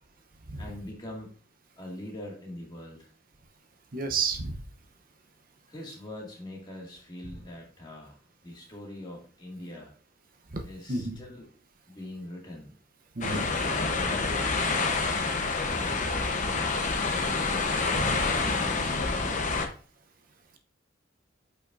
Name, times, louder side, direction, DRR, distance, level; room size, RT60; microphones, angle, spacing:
voice 1, 0.6-1.3 1.8-3.1 5.7-8.2 8.4-9.9 10.6-11.5 11.9-12.7 13.3-14.9 15.6-16.8 17.0-17.8 18.4-19.7, left 1 dB, 25° left, -2 dB, 2.1 m, -42 dB
voice 2, 3.9-4.6 10.5-10.6 10.9-11.2 13.2-13.5 17.9-18.2, right 4 dB, 45° right, 4 dB, 0.8 m, -30 dB
sound 1, 13.2-19.7, left 3 dB, 40° left, 0.9 m, -27 dB
8.3 x 5.6 x 2.6 m, 0.41 s
head